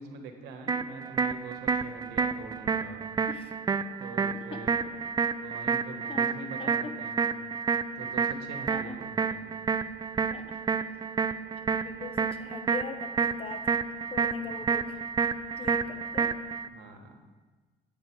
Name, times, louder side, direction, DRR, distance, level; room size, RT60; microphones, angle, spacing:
voice 1, 0.0-3.1 4.0-5.0 5.3-7.3 8.0-9.5 14.4-14.5 15.8-15.9 16.7-17.2, right 3 dB, 85° right, 4 dB, 1.3 m, -44 dB
sound 1, 0.7-16.7, right 6 dB, 25° right, 0.4 m, -30 dB
voice 2, 6.6-7.0 8.7-9.0 10.3-10.6 11.7-13.7 14.1-15.0 15.6-16.3, left 5 dB, 35° left, 7 dB, 0.9 m, -41 dB
8.3 x 7.8 x 4.5 m, 1.3 s
cardioid pair, 110°, 17 cm